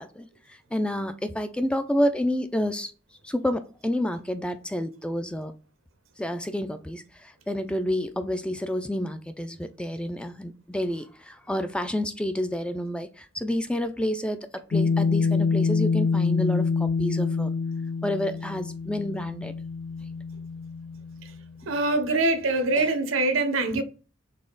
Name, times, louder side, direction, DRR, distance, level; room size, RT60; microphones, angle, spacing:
voice 1, 0.0-2.9 3.2-5.5 6.2-17.5 18.0-19.5 22.8-22.9 23.7-23.8, left 1 dB, 5° left, 0.3 m, -29 dB
sound 1, 14.7-21.4, left 4 dB, 90° left, 0.4 m, -26 dB
voice 2, 21.7-23.8, right 2 dB, 85° right, 0.8 m, -24 dB
4.1 x 3.3 x 3.8 m
head